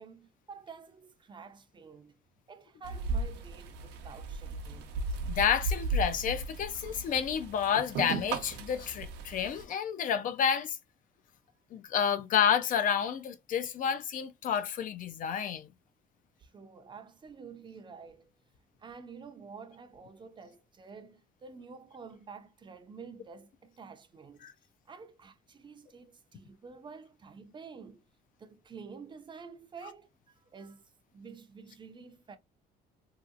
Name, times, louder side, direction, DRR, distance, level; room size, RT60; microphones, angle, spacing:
voice 1, 0.0-2.2 2.5-5.0 16.4-18.3 18.8-24.5 24.9-28.0 28.4-32.4, right 5 dB, 25° right, 0.6 m, -49 dB
sound 1, 2.8-9.6, right 3 dB, 90° right, 0.7 m, -36 dB
voice 2, 5.3-10.8 11.7-15.7 24.4-24.5, left 8 dB, 55° left, 0.5 m, -30 dB
2.9 x 2.8 x 2.5 m
cardioid pair, 110°, 17 cm